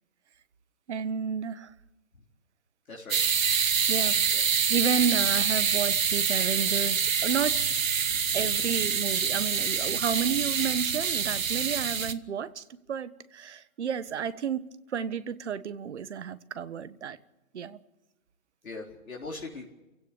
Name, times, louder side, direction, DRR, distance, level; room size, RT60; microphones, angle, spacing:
voice 1, 0.9-1.7 3.9-4.1 4.7-7.6 8.3-17.2 17.5-17.8, right 7 dB, 50° right, 1.5 m, -31 dB
voice 2, 2.9-3.2 3.6-3.7 4.3-4.4 8.2-8.4 18.6-19.7, left 3 dB, 70° left, 4.1 m, -41 dB
sound 1, 3.1-12.1, right 6 dB, 70° right, 1.4 m, -26 dB
28.5 x 16.5 x 6.9 m
figure-of-eight pair, 140°, 42 cm